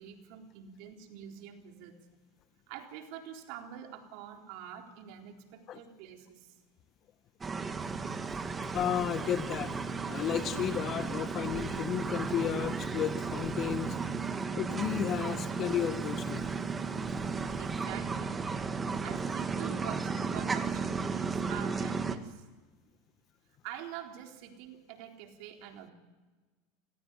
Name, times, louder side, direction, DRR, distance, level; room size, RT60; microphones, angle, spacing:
voice 1, 0.0-2.0 2.7-6.5 17.6-18.4 19.0-22.4 23.6-25.9, right 9 dB, 65° right, 3 dB, 4.0 m, -45 dB
sound 1, 7.4-22.2, right 5 dB, 20° right, 1.9 m, -34 dB
voice 2, 8.7-9.7 10.1-13.9 14.6-16.4, left 10 dB, 40° left, 10 dB, 1.7 m, -33 dB
29.0 x 16.5 x 9.9 m, 1.3 s
supercardioid pair, 110°, 0 cm